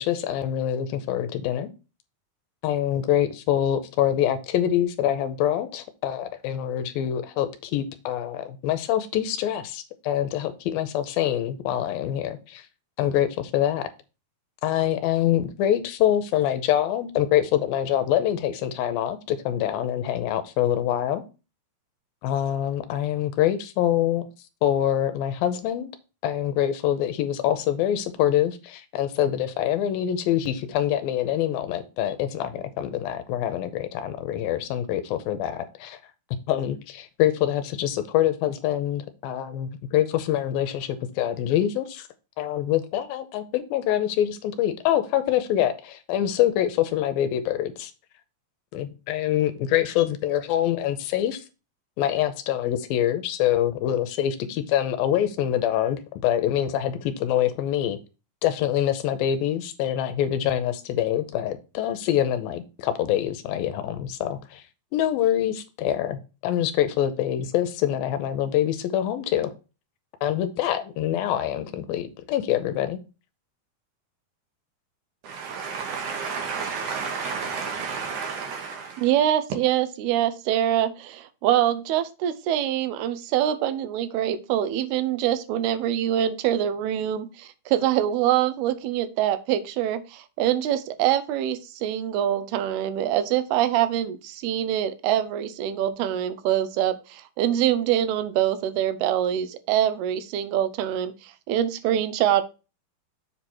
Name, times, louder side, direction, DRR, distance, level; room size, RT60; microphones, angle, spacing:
voice 1, 0.0-1.7 2.6-12.7 13.0-13.9 14.6-21.2 22.2-24.3 24.6-25.9 26.2-36.0 36.5-42.1 42.4-47.9 48.7-51.4 52.0-58.0 58.4-64.6 64.9-69.5 70.2-73.0, left 11 dB, 85° left, 2.4 m, -25 dB
voice 2, 75.2-79.0, right 5 dB, 65° right, 2.2 m, -31 dB
voice 3, 79.0-102.4, right 11 dB, 85° right, 2.7 m, -24 dB
7.5 x 4.4 x 4.6 m
omnidirectional pair, 4.4 m